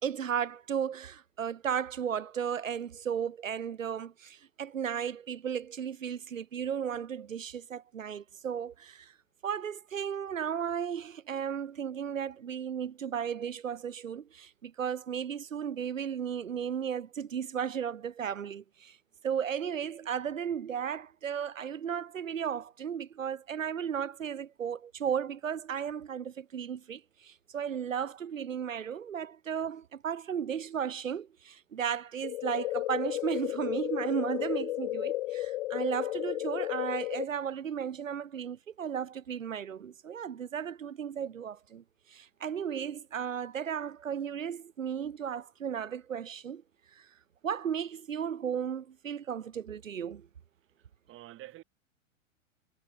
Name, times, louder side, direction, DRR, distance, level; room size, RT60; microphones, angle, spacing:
voice 1, 0.0-9.1 9.4-19.0 19.2-41.8 42.1-46.6 46.9-47.1 47.4-50.3, right 8 dB, 75° right, 1.4 m, -35 dB
sound 1, 32.2-37.3, left 16 dB, 50° left, 0.5 m, -33 dB
voice 2, 50.8-51.6, right 15 dB, 30° right, 4.1 m, -49 dB
figure-of-eight pair, 100°, 40 cm